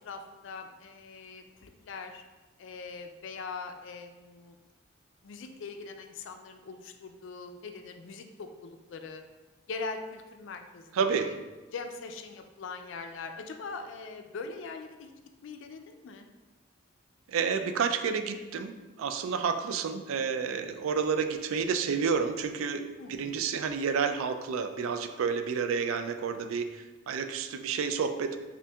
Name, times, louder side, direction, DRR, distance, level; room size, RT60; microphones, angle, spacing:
voice 1, 0.0-2.2 2.6-4.6 5.2-9.2 9.7-11.4 11.7-15.1 15.4-16.3 23.0-23.4, left 4 dB, 65° left, 6 dB, 0.3 m, -42 dB
voice 2, 10.9-11.3 17.3-22.8 23.1-28.4, right 6 dB, 80° right, 8 dB, 0.3 m, -30 dB
5.4 x 2.5 x 2.3 m, 1.2 s
head